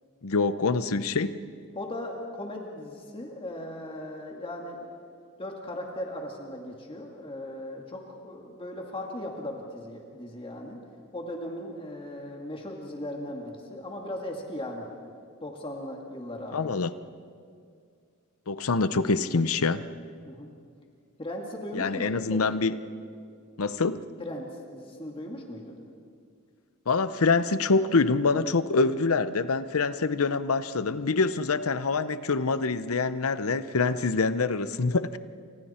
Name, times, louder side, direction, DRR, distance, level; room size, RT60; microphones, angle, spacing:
voice 1, 0.2-1.4 16.5-16.9 18.5-19.8 21.7-22.7 23.6-24.0 26.9-35.2, left 4 dB, 75° left, 13 dB, 0.8 m, -25 dB
voice 2, 1.7-5.0 5.4-10.8 11.1-14.9 15.4-16.7 20.2-20.5 21.2-22.6 24.2-24.5 24.7-25.8, left 1 dB, 25° left, 0 dB, 2.2 m, -38 dB
30.0 x 26.5 x 4.4 m, 2.2 s
head